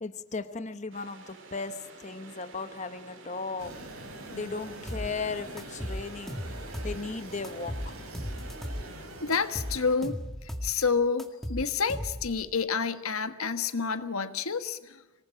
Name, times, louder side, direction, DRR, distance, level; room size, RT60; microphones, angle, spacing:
voice 1, 0.0-3.7 4.3-6.4 6.8-8.0, left 4 dB, 35° left, 11 dB, 0.9 m, -36 dB
sound 1, 0.9-9.1, right 3 dB, 60° right, 4.6 m, -51 dB
sound 2, 3.6-10.0, right 1 dB, 85° right, 5.4 m, -44 dB
sound 3, 4.9-5.1 5.6-7.0 7.4-8.9 9.3-10.7 11.2-12.4, equal, ahead, 1.9 m, -36 dB
voice 2, 9.2-10.2 10.4-15.0, left 5 dB, 85° left, 11 dB, 1.4 m, -29 dB
25.5 x 19.5 x 8.9 m, 1.1 s
head